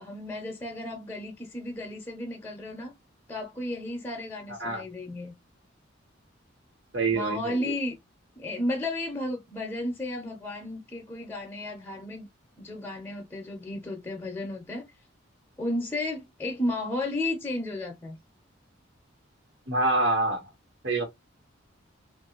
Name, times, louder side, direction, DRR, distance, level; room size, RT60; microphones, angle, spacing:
voice 1, 0.0-2.9 3.3-5.3 7.1-8.0 8.4-12.3 12.6-14.8 15.6-18.2, left 1 dB, 10° left, 0.6 m, -33 dB
voice 2, 4.5-4.8 6.9-7.7 19.7-20.4 20.8-21.0, right 2 dB, 65° right, 1.2 m, -26 dB
2.8 x 2.5 x 2.9 m
head